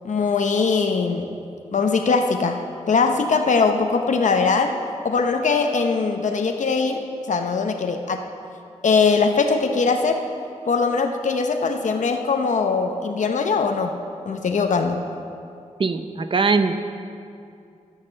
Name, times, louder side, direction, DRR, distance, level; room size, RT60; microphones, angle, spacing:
voice 1, 0.0-1.3 1.7-2.6 2.9-4.8 5.0-7.0 7.3-8.2 8.8-10.2 10.7-14.0 14.3-15.0, left 4 dB, 75° left, 5 dB, 0.7 m, -21 dB
voice 2, 15.8-16.7, right 4 dB, 45° right, 8 dB, 0.7 m, -21 dB
14.5 x 6.5 x 6.7 m, 2.5 s
wide cardioid pair, 120°, 13 cm